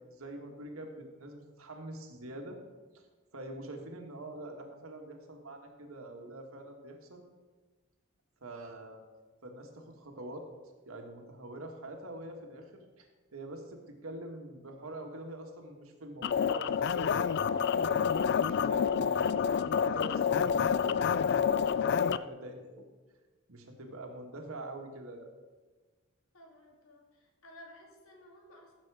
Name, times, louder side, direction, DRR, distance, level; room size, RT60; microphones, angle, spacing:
voice 1, 0.0-2.6 2.9-3.1 3.3-7.2 8.4-9.0 9.4-10.4 10.8-18.1 18.4-19.6 19.9-22.8 23.5-25.3, right 1 dB, 85° right, 3 dB, 1.8 m, -45 dB
sound 1, 16.2-22.2, left 7 dB, 50° left, 0.3 m, -28 dB
voice 2, 26.3-28.7, left 1 dB, 80° left, 0 dB, 2.6 m, -55 dB
15.0 x 7.0 x 4.9 m, 1.3 s
head